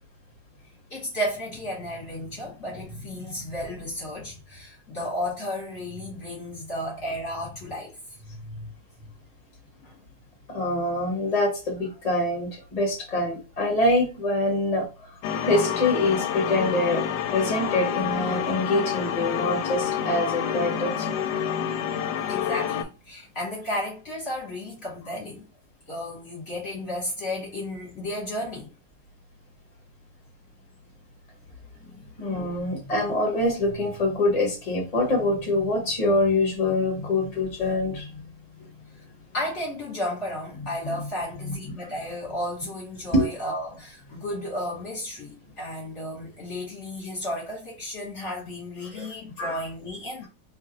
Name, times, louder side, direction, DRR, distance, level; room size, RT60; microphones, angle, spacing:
voice 1, 0.9-7.9 8.2-8.7 9.0-9.1 9.8-10.0 22.3-25.4 25.9-28.7 32.0-32.1 39.3-50.3, left 1 dB, 45° left, 1.4 m, -33 dB
voice 2, 10.5-14.9 15.4-17.0 17.3-21.2 31.8-38.2 40.8-41.0 41.4-41.5 43.1-43.3 48.9-49.1 49.4-49.6, left 2 dB, 25° left, 1.2 m, -25 dB
sound 1, 15.2-22.8, left 8 dB, 80° left, 1.2 m, -28 dB
3.0 x 2.4 x 3.9 m
omnidirectional pair, 2.0 m